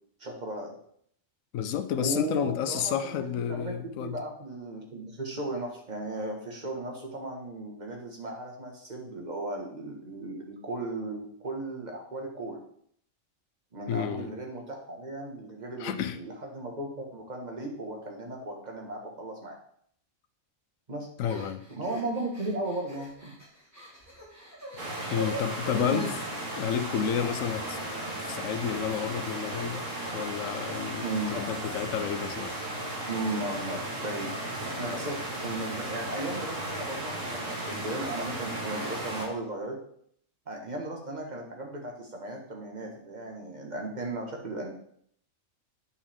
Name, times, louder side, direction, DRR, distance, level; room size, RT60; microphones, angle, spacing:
voice 1, 0.2-0.7 2.0-12.6 13.7-19.5 20.9-21.1 21.7-23.3 25.0-25.2 25.9-26.2 31.0-31.4 33.1-34.3 34.6-39.8 40.5-44.7, right 2 dB, 35° right, 1.8 m, -36 dB
voice 2, 1.5-4.2 13.9-14.3 15.8-16.2 21.2-21.6 25.1-26.1 26.6-27.8 28.2-29.8 30.1-32.5, left 8 dB, 80° left, 1.0 m, -30 dB
sound 1, 21.3-26.3, left 1 dB, 10° right, 2.4 m, -42 dB
sound 2, 24.8-39.3, right 1 dB, 70° right, 2.3 m, -35 dB
8.5 x 7.0 x 3.7 m
omnidirectional pair, 1.4 m